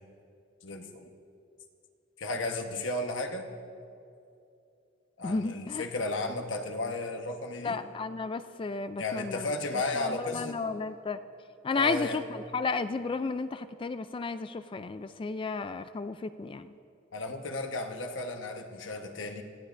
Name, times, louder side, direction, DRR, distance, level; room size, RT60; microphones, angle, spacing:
voice 1, 0.6-1.1 2.2-3.5 5.2-7.8 9.0-10.6 11.7-12.2 17.1-19.4, left 2 dB, 80° left, 4 dB, 1.1 m, -34 dB
voice 2, 5.2-5.8 7.6-9.5 9.9-11.2 11.6-16.7, left 4 dB, 25° left, 11 dB, 0.3 m, -33 dB
25.5 x 16.5 x 2.5 m, 2.6 s
head